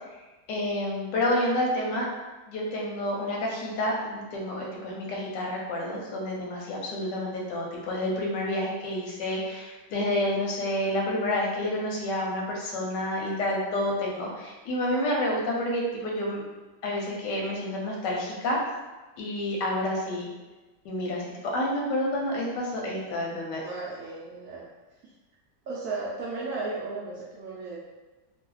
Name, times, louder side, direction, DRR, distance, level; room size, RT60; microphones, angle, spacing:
voice 1, 0.5-2.1 2.5-16.4 16.8-18.6 19.2-20.3 20.8-23.6, left 1 dB, 90° left, -2 dB, 1.3 m, -29 dB
voice 2, 23.6-24.7 25.0-25.1 25.7-27.8, right 3 dB, 75° right, -6 dB, 0.8 m, -35 dB
3.0 x 2.3 x 3.1 m, 1.2 s
omnidirectional pair, 1.9 m